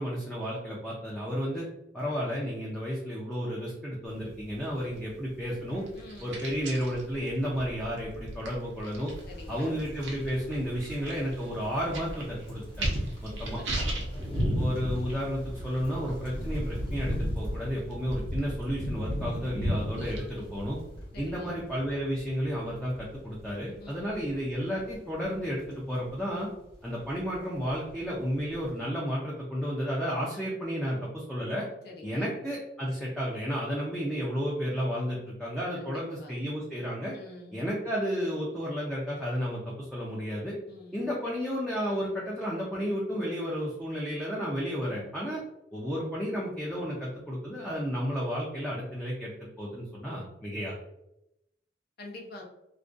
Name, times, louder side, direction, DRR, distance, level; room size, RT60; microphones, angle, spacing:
voice 1, 0.0-1.7 1.9-5.8 6.2-9.1 9.5-12.9 13.2-13.6 14.5-20.8 21.2-26.5 26.8-31.7 32.0-37.1 37.5-40.5 40.9-45.4 45.7-49.3 49.6-50.7, equal, 5° left, -6 dB, 0.4 m, -32 dB
sound 1, 4.0-21.0, right 1 dB, 75° right, 0.6 m, -40 dB
voice 2, 5.9-6.4 9.3-9.9 13.3-14.5 21.1-21.6 23.8-24.2 31.8-32.3 35.7-36.3 37.1-37.6 40.7-41.1 52.0-52.4, left 2 dB, 55° left, 0 dB, 0.5 m, -46 dB
sound 2, 9.1-28.8, equal, 35° left, 0.9 m, -37 dB
2.4 x 2.2 x 2.5 m, 0.86 s
head